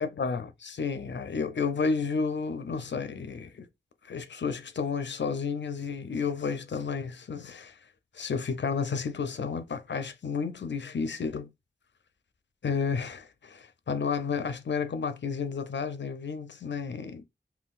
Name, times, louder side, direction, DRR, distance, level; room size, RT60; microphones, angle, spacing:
voice 1, 0.0-3.7 4.1-7.8 8.1-11.5 12.6-17.2, left 5 dB, 65° left, 0.5 m, -31 dB
3.7 x 2.3 x 2.4 m
wide cardioid pair, 50°, 20 cm